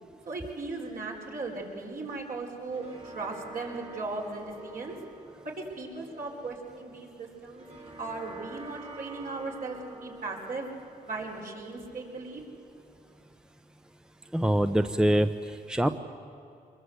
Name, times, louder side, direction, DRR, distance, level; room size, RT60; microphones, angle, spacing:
voice 1, 0.3-5.0 5.6-7.7 8.0-10.7 11.0-12.4, right 3 dB, 60° right, -1 dB, 4.8 m, -37 dB
sound 1, 2.4-13.3, right 3 dB, 35° right, 3.0 m, -48 dB
voice 2, 14.3-16.0, right 1 dB, 5° right, 8 dB, 0.8 m, -25 dB
24.5 x 21.5 x 8.1 m, 2.6 s
cardioid pair, 75°, 16 cm